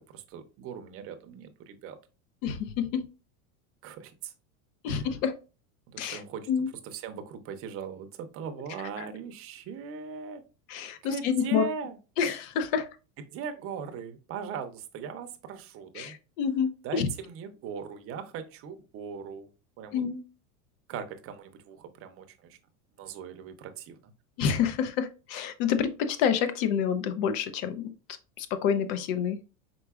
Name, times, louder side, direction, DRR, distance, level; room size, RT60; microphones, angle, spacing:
voice 1, 0.0-2.0 3.8-4.3 4.9-5.1 5.9-10.4 11.0-12.0 13.3-16.2 16.8-19.5 19.8-20.0 20.9-22.6 23.0-24.1, right 6 dB, 30° right, 7 dB, 0.6 m, -39 dB
voice 2, 2.4-3.0 4.8-5.3 6.0-6.2 6.5-6.7 9.0-9.1 10.7-11.6 12.2-12.9 16.0-17.1 19.9-20.2 24.4-27.9 28.4-29.4, left 7 dB, 60° left, 10 dB, 0.8 m, -28 dB
4.6 x 3.8 x 2.3 m, 0.32 s
supercardioid pair, 135°, 43 cm